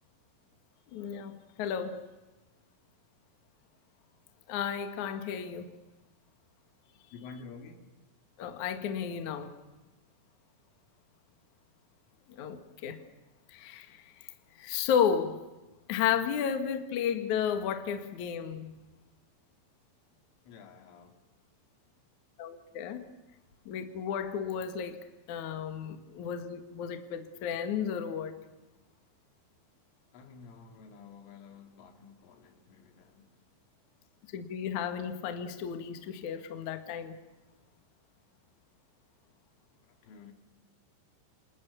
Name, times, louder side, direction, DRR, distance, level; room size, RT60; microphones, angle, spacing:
voice 1, 0.9-1.3 1.6-2.0 4.5-5.7 8.4-9.5 12.3-13.0 13.5-14.0 14.6-15.4 15.9-18.7 22.4-23.0 23.7-25.0 25.3-28.4 34.3-37.2, left 8 dB, 55° left, 2.4 m, -33 dB
voice 2, 7.1-7.9 20.5-21.2 30.1-33.3 40.0-40.3, left 5 dB, 90° left, 5.0 m, -50 dB
30.0 x 27.0 x 7.1 m
omnidirectional pair, 5.6 m